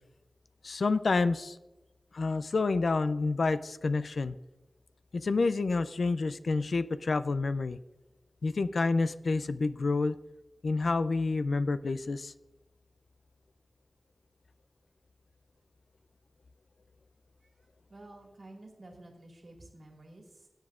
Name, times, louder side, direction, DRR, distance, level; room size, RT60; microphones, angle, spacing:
voice 1, 0.6-1.6 2.1-4.4 5.1-7.8 8.4-10.2 10.6-12.3, left 3 dB, 85° left, 13 dB, 0.4 m, -28 dB
voice 2, 17.9-20.5, right 2 dB, 65° right, 0 dB, 2.1 m, -51 dB
17.5 x 7.9 x 2.5 m, 1.0 s
wide cardioid pair, 80°, 0 cm